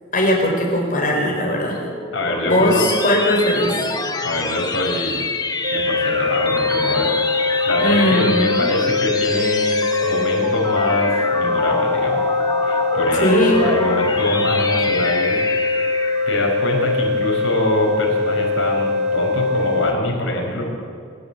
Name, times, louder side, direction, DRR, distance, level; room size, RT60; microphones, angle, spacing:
voice 1, 0.1-1.8 2.4-3.8 7.8-8.3 13.2-13.6, equal, 40° left, -1 dB, 5.1 m, -18 dB
sound 1, 1.8-16.4, left 3 dB, 20° left, 1.2 m, -26 dB
voice 2, 2.1-2.9 4.2-5.2 5.7-9.8 10.0-12.2 12.6-15.5 16.3-20.7, left 1 dB, 70° left, 0 dB, 5.3 m, -24 dB
sound 2, 5.6-19.9, left 3 dB, 50° right, 2.1 m, -22 dB
27.5 x 12.5 x 8.4 m, 2.2 s
head